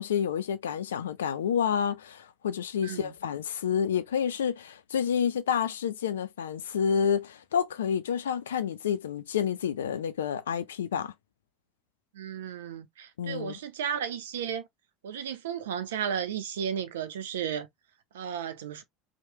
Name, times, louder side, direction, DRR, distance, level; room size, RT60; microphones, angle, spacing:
voice 1, 0.0-11.1 13.2-13.6, left 8 dB, 80° left, 0.4 m, -29 dB
voice 2, 2.8-3.1 12.1-14.7 15.0-17.7 18.1-18.8, right 8 dB, 75° right, 0.6 m, -34 dB
3.0 x 2.2 x 2.8 m
hypercardioid pair, 75°, 0 cm